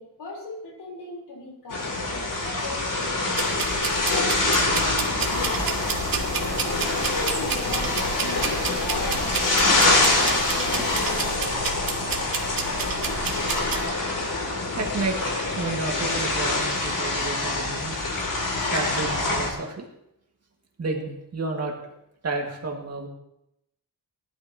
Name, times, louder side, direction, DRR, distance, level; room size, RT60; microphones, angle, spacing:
voice 1, 0.0-3.6 4.0-5.7 6.6-11.5, left 3 dB, 75° left, -1 dB, 3.9 m, -38 dB
sound 1, 1.7-19.5, left 2 dB, 50° left, 2.7 m, -25 dB
sound 2, 3.3-13.8, right 5 dB, 60° right, 1.6 m, -31 dB
sound 3, 5.2-11.4, right 1 dB, 10° right, 1.9 m, -38 dB
voice 2, 14.8-15.2 15.5-18.0 18.6-19.9 20.8-21.7 22.2-23.1, right 3 dB, 40° right, 1 dB, 1.9 m, -30 dB
19.0 x 11.5 x 2.9 m, 0.83 s
wide cardioid pair, 175°, 40 cm